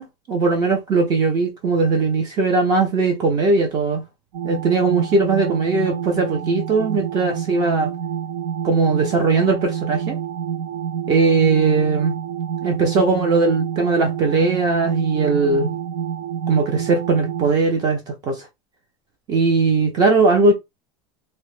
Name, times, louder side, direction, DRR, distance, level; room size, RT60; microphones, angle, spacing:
voice 1, 0.0-4.0 4.4-7.9 8.6-10.2 11.1-12.2 12.6-15.7 16.5-18.5 19.3-20.5, right 3 dB, 30° right, 0.5 m, -19 dB
sound 1, 4.3-17.5, right 8 dB, 80° right, 0.5 m, -28 dB
2.8 x 2.1 x 3.1 m
supercardioid pair, 170°, 14 cm